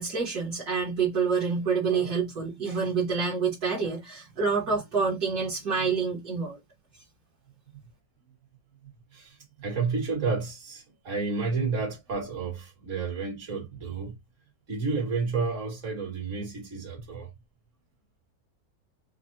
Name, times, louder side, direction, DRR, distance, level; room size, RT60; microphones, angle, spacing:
voice 1, 0.0-6.6, right 5 dB, 60° right, 1.8 m, -27 dB
voice 2, 1.9-2.2 7.7-7.8 9.1-14.2 14.7-17.3, right 4 dB, 45° right, 1.9 m, -31 dB
5.9 x 2.1 x 2.6 m
omnidirectional pair, 1.9 m